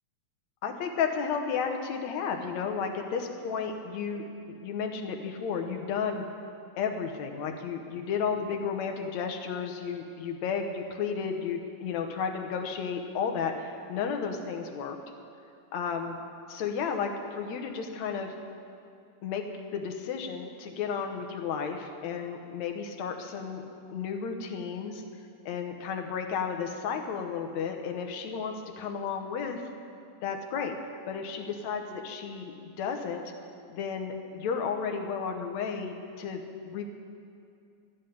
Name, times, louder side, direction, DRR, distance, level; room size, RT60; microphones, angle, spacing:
voice 1, 0.6-6.2 6.8-15.0 15.7-16.2 16.5-18.3 19.2-19.4 19.7-23.6 23.9-25.0 25.5-29.6 30.2-30.7 31.1-33.2 33.7-36.8, left 6 dB, 70° left, 4 dB, 2.1 m, -33 dB
13.5 x 7.8 x 10.0 m, 2.5 s
omnidirectional pair, 3.6 m